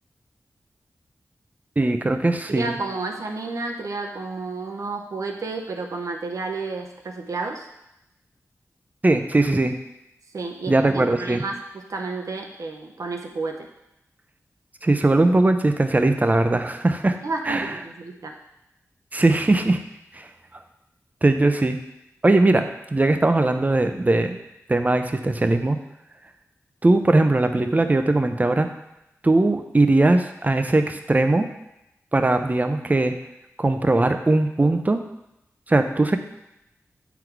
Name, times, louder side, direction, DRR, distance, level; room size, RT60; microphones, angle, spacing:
voice 1, 1.8-2.8 9.0-9.7 10.7-11.4 14.8-17.2 17.5-17.7 19.1-19.8 20.1-20.3 21.2-21.8 22.2-24.4 24.7-25.8 26.8-28.7 29.2-31.5 32.1-33.1 33.6-35.0 35.7-36.2, right 2 dB, 30° right, 7 dB, 0.7 m, -20 dB
voice 2, 2.5-7.7 10.3-13.7 17.2-18.4, right 3 dB, 75° right, 3 dB, 0.9 m, -31 dB
8.2 x 3.9 x 4.7 m, 0.87 s
cardioid pair, 60°, 6 cm